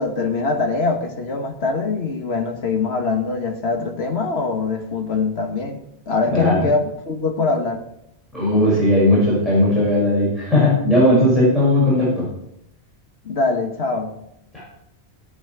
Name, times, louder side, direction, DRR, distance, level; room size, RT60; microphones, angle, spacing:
voice 1, 0.0-5.8 6.1-7.8 13.3-14.2, left 4 dB, 70° left, 3 dB, 1.8 m, -23 dB
voice 2, 6.3-6.6 8.3-12.1 14.5-14.6, left 1 dB, ahead, -9 dB, 6.3 m, -17 dB
17.0 x 8.9 x 4.7 m, 0.81 s
omnidirectional pair, 1.1 m